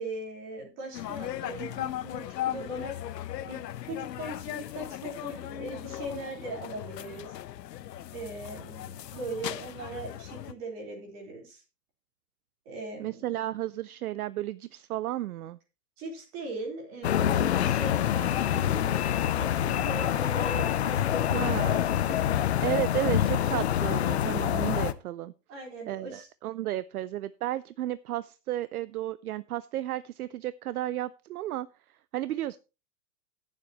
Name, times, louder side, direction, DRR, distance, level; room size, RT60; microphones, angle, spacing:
voice 1, 0.0-3.0 3.4-7.3 8.1-11.6 12.7-13.2 16.0-19.0 19.4-21.4 22.1-22.5 22.9-23.4 25.5-26.3, right 2 dB, 25° right, 0 dB, 4.1 m, -40 dB
sound 1, 0.9-10.5, left 12 dB, 75° left, 0.9 m, -38 dB
voice 2, 13.0-15.6 21.3-21.8 22.6-25.3 25.9-31.7 32.1-32.6, right 14 dB, 60° right, 17 dB, 0.6 m, -33 dB
sound 2, 17.0-24.9, left 10 dB, 40° left, 0.6 m, -26 dB
19.0 x 7.5 x 3.0 m, 0.30 s
supercardioid pair, 175°, 50 cm